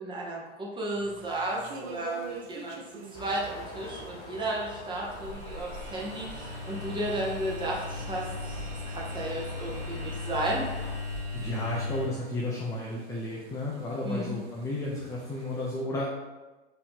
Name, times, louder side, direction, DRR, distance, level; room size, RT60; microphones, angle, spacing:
voice 1, 0.0-2.8 3.2-10.7 14.0-14.4, right 1 dB, 15° right, -4 dB, 1.0 m, -33 dB
sound 1, 0.9-15.8, right 4 dB, 45° right, 0.7 m, -50 dB
sound 2, 3.1-11.0, left 1 dB, 45° left, 1.0 m, -45 dB
sound 3, 5.1-12.1, left 3 dB, 90° right, 1.0 m, -37 dB
voice 2, 11.3-16.1, left 1 dB, 10° left, -3 dB, 0.4 m, -33 dB
3.9 x 2.9 x 3.7 m, 1.2 s
figure-of-eight pair, 95°, 34 cm